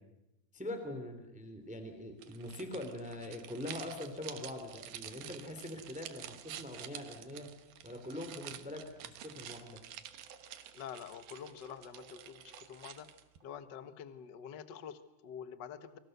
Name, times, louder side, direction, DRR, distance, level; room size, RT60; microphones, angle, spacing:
voice 1, 0.5-7.5 7.8-9.8, left 1 dB, ahead, 7 dB, 2.8 m, -43 dB
sound 1, 2.2-13.4, right 11 dB, 75° right, 2.9 m, -49 dB
sound 2, 7.7-7.8 8.7-8.8 9.8-13.6, right 4 dB, 45° right, 4.3 m, -63 dB
voice 2, 10.7-13.1 13.4-16.0, left 8 dB, 70° left, 11 dB, 1.0 m, -47 dB
29.0 x 25.0 x 6.8 m, 0.95 s
omnidirectional pair, 4.2 m